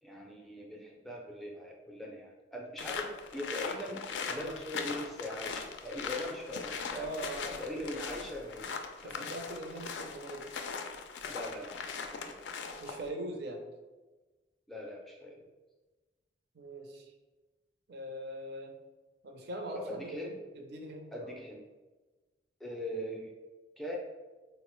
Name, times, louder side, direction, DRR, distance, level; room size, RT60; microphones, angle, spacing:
voice 1, 0.0-7.1 7.6-8.7 9.0-9.3 11.3-12.5 14.7-15.4 19.8-20.4 21.1-21.6 22.6-23.3 23.8-24.0, left 1 dB, ahead, -1 dB, 0.4 m, -41 dB
sound 1, 2.8-13.1, left 5 dB, 80° left, 0.3 m, -40 dB
voice 2, 6.9-7.9 9.0-10.5 12.8-13.6 16.5-17.1 17.9-18.7 19.2-21.4, right 1 dB, 65° right, 3 dB, 0.5 m, -42 dB
3.6 x 2.0 x 3.0 m, 1.2 s
head